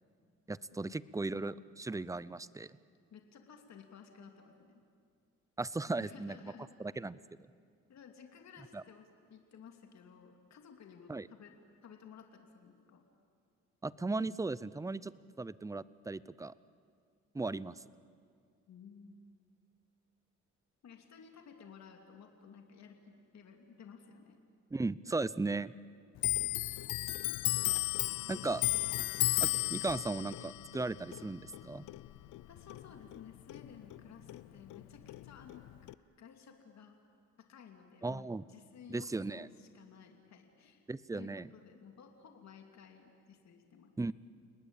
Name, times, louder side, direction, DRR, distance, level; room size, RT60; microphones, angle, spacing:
voice 1, 0.5-2.8 5.6-6.5 6.8-7.2 8.7-8.8 11.1-11.3 13.8-15.1 15.4-16.5 17.3-17.7 24.7-25.7 28.3-28.6 29.4-31.8 38.0-38.4 38.9-39.5 40.9-41.5 44.0-44.1, right 3 dB, 10° right, 18 dB, 0.6 m, -37 dB
voice 2, 3.1-4.8 6.0-6.7 7.9-11.5 11.8-13.0 18.7-19.2 20.8-24.4 32.5-35.6 36.2-37.0 37.5-40.8 41.1-43.9, left 7 dB, 60° left, 4 dB, 2.8 m, -55 dB
Clock, 26.2-33.2 33.5-34.8 35.1-35.9, left 17 dB, 80° left, 0.6 m, -34 dB
30.0 x 19.0 x 8.8 m, 2.2 s
cardioid pair, 90°, 30 cm